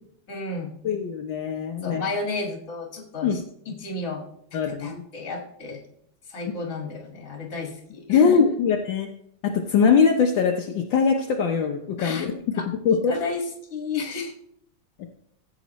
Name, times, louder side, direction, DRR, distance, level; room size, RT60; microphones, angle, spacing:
voice 1, 0.3-0.7 1.8-3.4 3.7-4.3 4.5-5.8 6.3-8.3 12.0-12.3 12.5-12.7 13.1-14.3, left 3 dB, 40° left, 1 dB, 2.2 m, -32 dB
voice 2, 0.8-2.0 3.2-3.4 4.5-5.0 8.1-9.1 9.4-12.4 12.7-13.1, left 6 dB, 70° left, 1 dB, 1.6 m, -22 dB
15.0 x 8.3 x 3.1 m, 0.72 s
omnidirectional pair, 2.2 m